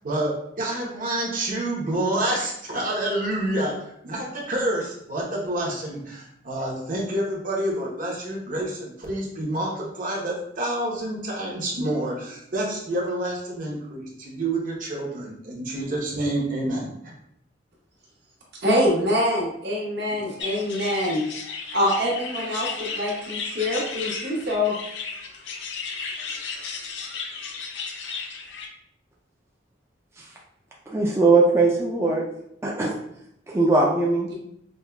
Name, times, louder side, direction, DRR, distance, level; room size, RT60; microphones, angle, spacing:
voice 1, 0.0-17.1, right 1 dB, 50° right, -3 dB, 0.9 m, -28 dB
voice 2, 18.6-21.3 21.7-24.7 34.3-34.4, left 1 dB, 65° right, -5 dB, 1.2 m, -24 dB
sound 1, 20.4-28.7, left 5 dB, 80° left, 0.5 m, -34 dB
voice 3, 30.9-32.2 32.6-32.9 33.5-34.3, right 3 dB, 15° right, -3 dB, 0.4 m, -20 dB
5.2 x 2.3 x 2.2 m, 0.75 s
head